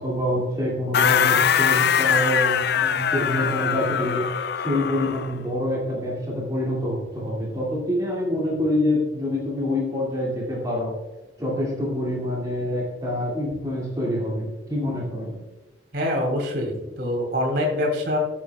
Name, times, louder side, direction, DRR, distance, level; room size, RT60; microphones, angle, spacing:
voice 1, 0.0-10.9 11.4-15.4, left 1 dB, 20° right, -4 dB, 2.4 m, -26 dB
sound 1, 0.9-5.3, left 8 dB, 60° left, 0.4 m, -22 dB
voice 2, 15.9-18.2, left 1 dB, 60° right, 0 dB, 2.8 m, -25 dB
14.0 x 7.5 x 2.4 m, 1.1 s
head